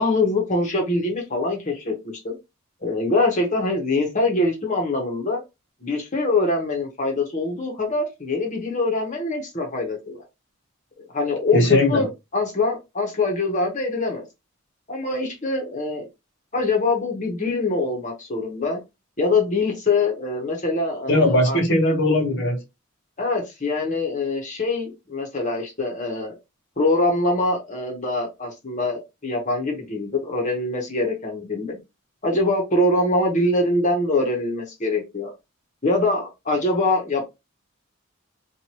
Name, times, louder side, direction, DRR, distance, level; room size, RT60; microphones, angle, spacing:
voice 1, 0.0-2.4 2.8-5.4 5.8-10.2 11.1-14.2 14.9-16.1 16.5-18.8 19.2-21.6 23.2-26.3 26.8-31.8 32.2-35.3 35.8-37.2, left 2 dB, 35° left, 1.1 m, -24 dB
voice 2, 11.5-12.1 21.1-22.6, left 1 dB, 60° left, 0.9 m, -19 dB
4.4 x 2.6 x 3.0 m
head